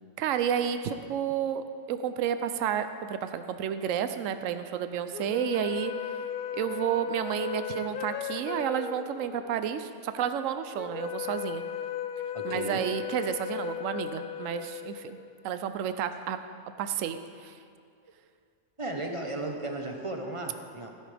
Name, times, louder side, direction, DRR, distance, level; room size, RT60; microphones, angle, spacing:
voice 1, 0.2-5.9 6.5-11.6 12.4-15.2 15.4-16.4 16.8-17.6, right 9 dB, 85° right, 10 dB, 1.0 m, -31 dB
sound 1, 5.1-15.5, left 9 dB, 65° left, 0.5 m, -37 dB
voice 2, 12.3-12.8 18.0-18.1 18.8-20.9, right 2 dB, 25° right, 2 dB, 0.9 m, -35 dB
16.5 x 11.0 x 3.4 m, 2.3 s
omnidirectional pair, 1.3 m